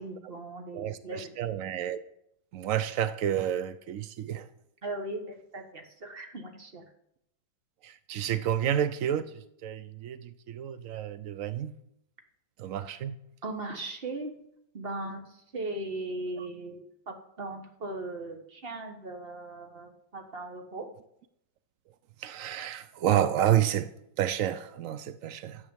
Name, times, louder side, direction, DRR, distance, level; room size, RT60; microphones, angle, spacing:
voice 1, 0.0-1.4 4.8-6.8 13.4-14.3 14.7-20.9, right 2 dB, 30° right, 1.6 m, -38 dB
voice 2, 0.7-2.0 2.5-4.5 7.8-11.7 12.6-13.2 16.4-16.5 22.2-23.9 24.2-25.6, right 10 dB, 85° right, 0.7 m, -30 dB
12.5 x 8.5 x 7.1 m
omnidirectional pair, 2.1 m